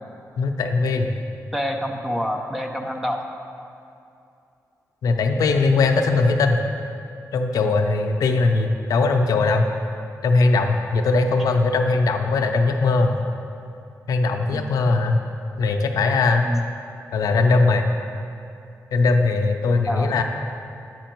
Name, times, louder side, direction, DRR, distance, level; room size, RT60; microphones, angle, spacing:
voice 1, 0.4-1.1 5.0-6.6 7.3-9.7 10.2-13.1 14.1-15.2 15.6-16.5 17.1-17.9 18.9-20.2, left 3 dB, 85° left, 5 dB, 0.5 m, -20 dB
voice 2, 1.5-3.2 14.5-14.7 16.4-16.6 19.9-20.1, equal, 5° right, 2 dB, 0.5 m, -27 dB
7.8 x 5.0 x 4.5 m, 2.6 s
wide cardioid pair, 135°, 6 cm